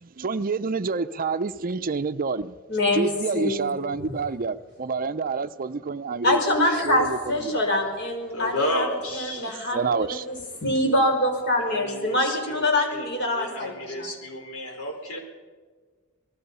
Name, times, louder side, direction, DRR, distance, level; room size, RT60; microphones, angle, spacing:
voice 1, 0.0-2.6 2.9-7.2 7.4-7.6 9.7-10.3, right 4 dB, 40° right, 12 dB, 0.5 m, -28 dB
voice 2, 2.7-3.8 6.2-14.1, left 1 dB, 50° left, 3 dB, 5.1 m, -25 dB
voice 3, 8.3-9.5 11.6-15.2, left 1 dB, 75° left, 3 dB, 5.0 m, -32 dB
26.5 x 19.5 x 5.5 m, 1.5 s
head